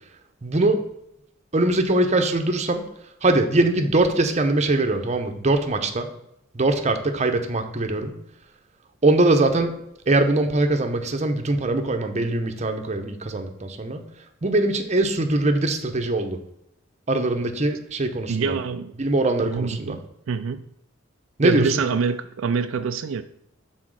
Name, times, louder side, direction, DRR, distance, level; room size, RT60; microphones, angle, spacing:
voice 1, 0.4-0.8 1.5-2.8 3.2-6.1 6.5-8.1 9.0-9.8 10.1-14.0 14.4-16.4 17.1-18.6 19.0-20.0 21.4-21.7, right 2 dB, 35° right, 5 dB, 0.8 m, -22 dB
voice 2, 18.3-18.9 19.4-20.7 21.4-23.2, right 5 dB, 80° right, 9 dB, 0.4 m, -26 dB
6.1 x 4.2 x 6.3 m, 0.80 s
head